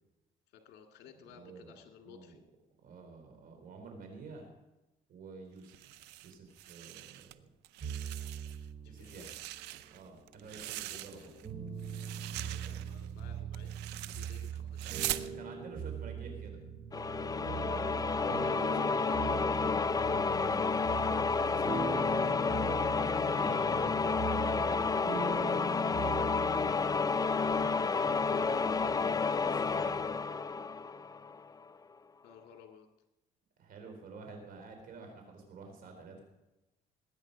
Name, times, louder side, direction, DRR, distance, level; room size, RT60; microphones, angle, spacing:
voice 1, 0.5-2.4 8.8-9.3 10.3-11.4 12.4-15.1 18.3-18.6 32.2-32.9, left 7 dB, 75° left, 4 dB, 2.0 m, -56 dB
voice 2, 1.3-1.8 2.0-2.4 2.8-4.5 5.1-7.4 8.9-9.3 9.8-11.3 12.6-12.8 14.8-16.6 17.2-18.0 18.4-22.3 23.2-25.6 26.0-26.2 27.6-30.0 33.6-36.2, right 4 dB, 55° right, 3 dB, 3.9 m, -49 dB
sound 1, 5.6-7.3 7.6-8.7 9.0-11.5 11.8-15.3, right 15 dB, 90° right, 0.6 m, -42 dB
sound 2, 7.8-9.5 10.2-26.7, right 5 dB, 35° right, 3.0 m, -41 dB
sound 3, 16.9-31.5, left 4 dB, 20° left, 0.5 m, -30 dB
19.5 x 9.2 x 5.3 m, 1.0 s
cardioid pair, 110°, 17 cm